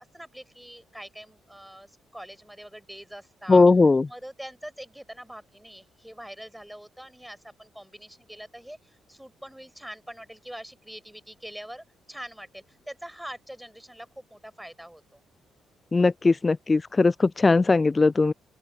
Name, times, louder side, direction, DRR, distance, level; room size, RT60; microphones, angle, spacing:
voice 1, 0.0-3.6 4.1-15.2, equal, 5° right, 5.9 m, -44 dB
voice 2, 3.5-4.1 15.9-18.3, left 3 dB, 30° left, 0.5 m, -19 dB
open air
figure-of-eight pair, 40°, 0 cm